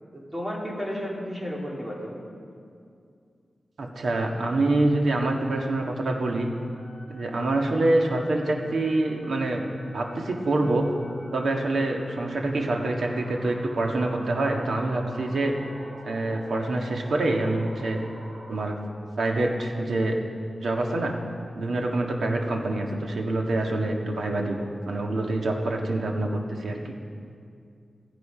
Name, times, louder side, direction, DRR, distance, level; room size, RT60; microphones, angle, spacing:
voice 1, 0.1-2.2, equal, 20° right, -3 dB, 2.8 m, -33 dB
voice 2, 3.8-6.5 7.1-9.6 9.9-10.9 11.3-15.6 16.0-18.0 18.5-18.8 19.2-20.2 20.6-21.2 21.5-26.9, right 2 dB, 85° right, 1 dB, 1.7 m, -26 dB
sound 1, 6.7-18.7, right 1 dB, 65° right, 3.6 m, -46 dB
16.0 x 15.5 x 5.0 m, 2.4 s
wide cardioid pair, 125°, 0 cm